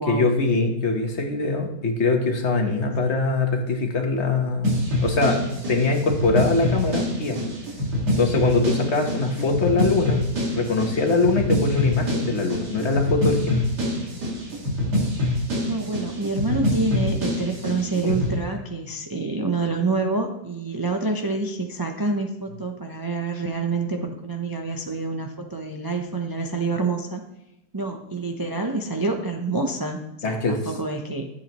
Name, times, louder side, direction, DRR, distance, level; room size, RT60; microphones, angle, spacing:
voice 1, 0.1-7.4 8.2-10.2 10.5-13.7 18.0-18.1 30.2-30.7, left 3 dB, 45° left, 3 dB, 1.4 m, -23 dB
sound 1, 4.6-18.4, left 1 dB, 85° right, 2.8 m, -25 dB
voice 2, 15.6-27.2 27.7-31.3, right 3 dB, 35° right, 2 dB, 0.3 m, -27 dB
13.5 x 8.2 x 3.0 m, 0.89 s
omnidirectional pair, 1.7 m